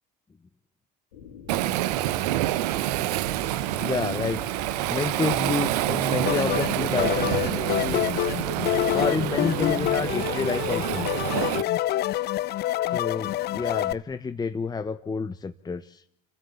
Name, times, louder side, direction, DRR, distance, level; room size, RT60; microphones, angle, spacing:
sound 1, 1.1-10.3, left 6 dB, 85° left, 3.5 m, -45 dB
Waves surf, 1.5-11.6, right 15 dB, 70° right, 1.0 m, -27 dB
voice 1, 3.8-4.4 4.9-8.0 8.9-11.0 12.9-16.0, left 4 dB, 20° left, 9 dB, 1.1 m, -29 dB
sound 2, 6.3-13.9, left 14 dB, 50° left, 0.9 m, -27 dB
28.0 x 15.0 x 8.6 m, 0.77 s
hypercardioid pair, 70°, 21 cm